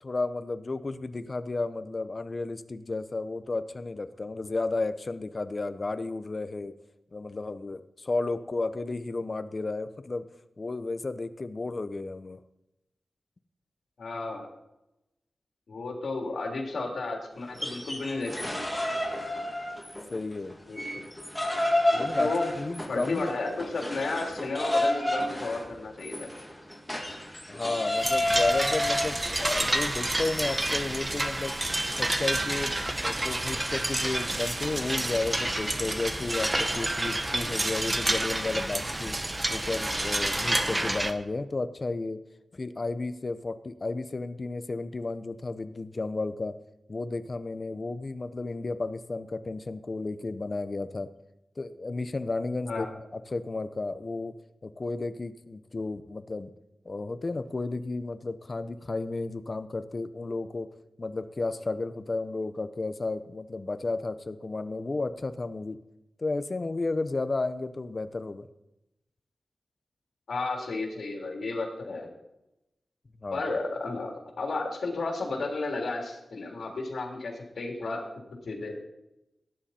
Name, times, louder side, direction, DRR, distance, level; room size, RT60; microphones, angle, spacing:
voice 1, 0.0-6.7 7.1-10.3 10.6-12.4 20.1-20.6 21.9-23.3 27.5-31.5 32.0-39.2 39.5-42.2 42.5-46.6 46.9-51.1 51.6-52.9 53.1-54.3 54.6-56.5 56.8-60.7 61.0-65.8 66.2-68.5 73.2-73.5, left 3 dB, 40° left, 12 dB, 0.7 m, -33 dB
voice 2, 14.0-14.5 15.7-18.7 20.7-21.0 22.2-22.4 22.9-26.3 52.7-52.9 70.3-72.1 73.3-74.1 74.4-78.1 78.5-78.9, left 3 dB, 80° left, 0 dB, 3.4 m, -33 dB
sound 1, 17.4-20.2 20.5-30.8, left 1 dB, 5° left, 2.6 m, -30 dB
sound 2, 28.0-41.1, right 1 dB, 20° right, 0.9 m, -29 dB
18.0 x 10.0 x 4.3 m, 0.92 s
wide cardioid pair, 130°, 0 cm